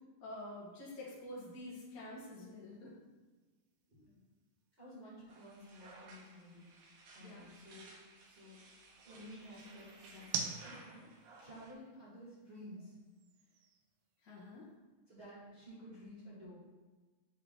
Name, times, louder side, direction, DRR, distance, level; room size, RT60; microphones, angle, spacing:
voice 1, 0.2-2.9 7.2-7.5 14.2-14.7, left 1 dB, 65° left, -7 dB, 0.8 m, -48 dB
sound 1, 0.5-14.8, right 6 dB, 90° right, 2.3 m, -51 dB
voice 2, 4.8-6.7 7.1-7.9 8.2-8.5 9.0-11.1 11.4-12.9 15.1-16.6, equal, 25° right, -9 dB, 1.4 m, -53 dB
sound 2, 5.3-11.7, right 3 dB, 75° right, 2.3 m, -58 dB
7.6 x 3.4 x 3.8 m, 1.3 s
omnidirectional pair, 3.8 m